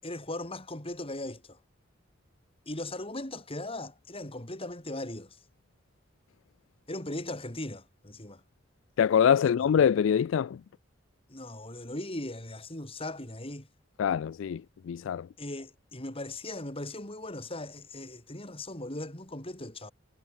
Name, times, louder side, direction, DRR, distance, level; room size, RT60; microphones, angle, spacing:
voice 1, 0.0-1.6 2.7-5.4 6.9-8.4 9.4-9.5 11.3-13.7 15.4-19.9, left 1 dB, 30° left, 6.0 m, -38 dB
voice 2, 9.0-10.6 14.0-14.6 14.9-15.3, left 8 dB, 75° left, 0.3 m, -24 dB
head